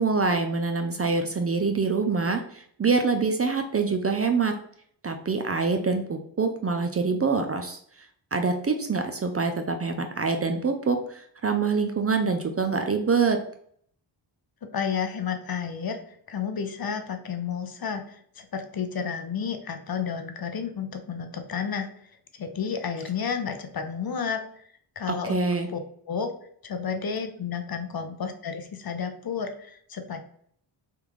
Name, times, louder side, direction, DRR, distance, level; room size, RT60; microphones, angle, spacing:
voice 1, 0.0-4.5 5.0-7.8 8.3-13.4 25.1-25.7, right 4 dB, 30° right, 6 dB, 0.4 m, -25 dB
voice 2, 14.7-16.0 16.3-21.9 22.4-24.4 25.0-25.4 25.7-25.8 26.1-26.3 26.6-30.2, left 6 dB, 50° left, 7 dB, 0.6 m, -31 dB
3.5 x 2.3 x 3.0 m, 0.62 s
cardioid pair, 50°, 48 cm